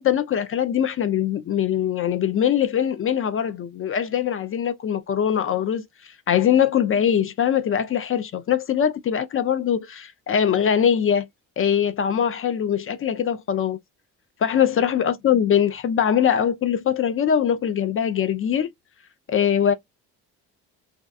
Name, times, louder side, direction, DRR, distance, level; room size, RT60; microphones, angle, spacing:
voice 1, 0.0-11.3 11.6-13.8 14.4-18.7 19.3-19.7, left 9 dB, 35° left, 0.4 m, -22 dB
2.4 x 2.2 x 2.5 m
supercardioid pair, 70°, 41 cm